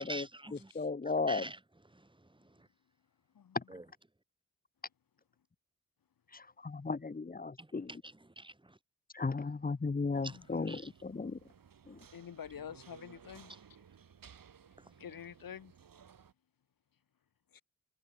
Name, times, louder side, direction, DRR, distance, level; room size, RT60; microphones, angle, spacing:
voice 1, 0.0-0.7 1.3-1.6 1.9-2.7 3.7-3.8 7.6-8.8 10.2-10.9 14.8-14.9, right 2 dB, 15° right, 4.0 m, -47 dB
voice 2, 0.7-1.5 3.5-3.6 6.3-7.9 9.1-11.4 11.9-12.0, left 4 dB, 25° left, 1.3 m, -35 dB
sound 1, 10.1-16.3, right 7 dB, 75° right, 7.9 m, -59 dB
voice 3, 10.2-10.7 12.1-13.5 14.7-15.7 17.5-17.6, left 8 dB, 75° left, 2.6 m, -48 dB
wide cardioid pair, 105°, 34 cm